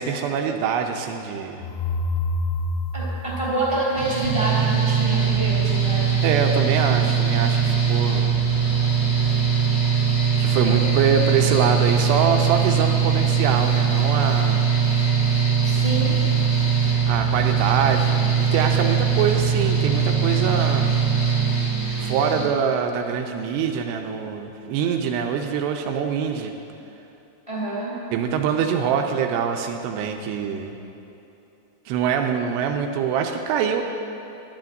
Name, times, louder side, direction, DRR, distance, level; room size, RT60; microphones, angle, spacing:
voice 1, 0.0-1.6 6.2-8.4 10.4-14.7 17.1-21.0 22.0-26.5 28.1-30.8 31.9-33.8, right 7 dB, 80° right, 4 dB, 2.7 m, -24 dB
sound 1, 1.6-4.5, left 2 dB, 90° left, 2.2 m, -27 dB
voice 2, 2.9-6.2 10.6-10.9 15.6-16.1 27.5-28.0, right 2 dB, 10° left, -6 dB, 1.5 m, -27 dB
Mechanical fan, 4.0-22.4, right 7 dB, 30° left, 1.7 m, -21 dB
19.0 x 11.5 x 2.6 m, 2.8 s
omnidirectional pair, 5.2 m